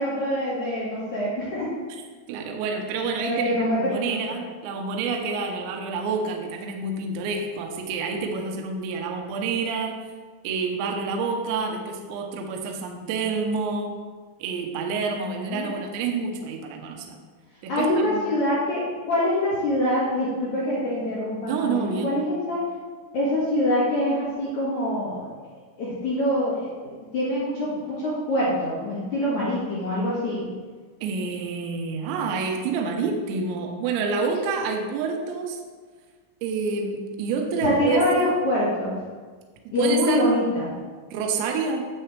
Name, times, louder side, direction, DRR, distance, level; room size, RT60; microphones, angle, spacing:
voice 1, 0.0-1.7 3.2-3.8 4.1-4.2 15.3-15.7 17.7-22.6 23.1-25.2 25.8-26.7 27.1-30.4 37.6-39.0 39.7-40.7, left 1 dB, 60° left, -9 dB, 2.1 m, -25 dB
voice 2, 2.3-10.0 10.4-13.9 14.4-17.2 17.6-18.3 21.4-22.1 31.0-35.6 36.4-38.4 39.7-40.3 41.1-41.9, right 4 dB, 75° right, 2 dB, 2.9 m, -28 dB
9.0 x 8.1 x 3.3 m, 1.5 s
omnidirectional pair, 5.7 m